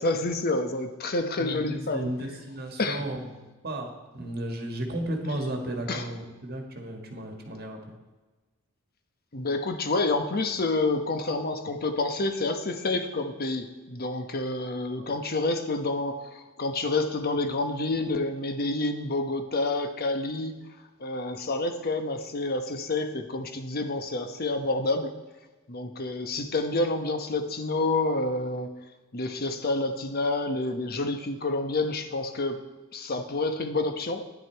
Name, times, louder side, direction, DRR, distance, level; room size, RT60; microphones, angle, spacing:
voice 1, 0.0-2.1 2.8-3.0 5.9-6.0 9.3-20.5 21.0-25.1 25.7-28.7 29.1-32.6 32.9-34.2, left 2 dB, 50° left, 7 dB, 1.0 m, -28 dB
voice 2, 1.4-7.8 14.9-15.2, right 1 dB, 50° right, 3 dB, 1.7 m, -34 dB
9.9 x 9.8 x 4.5 m, 1.2 s
head